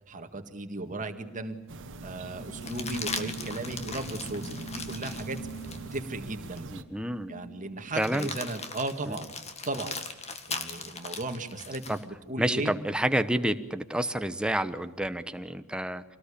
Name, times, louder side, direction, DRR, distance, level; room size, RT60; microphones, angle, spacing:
voice 1, 0.1-1.6 2.0-5.4 5.9-6.7 7.3-9.3 9.7-10.0 10.5-12.7, right 2 dB, 35° right, 6 dB, 1.9 m, -36 dB
sound 1, 1.0-1.1 2.6-6.0 6.6-6.7 7.9-12.0 14.2-15.1, left 4 dB, 30° left, 2.1 m, -39 dB
sound 2, 1.1-8.9, right 3 dB, 65° left, 3.3 m, -44 dB
sound 3, 1.7-6.8, right 2 dB, 60° right, 1.4 m, -43 dB
voice 2, 6.7-7.3 8.0-8.3 9.0-9.2 11.9-12.0 12.4-16.0, right 1 dB, 5° right, 10 dB, 1.0 m, -29 dB
25.5 x 19.0 x 8.6 m, 1.1 s
head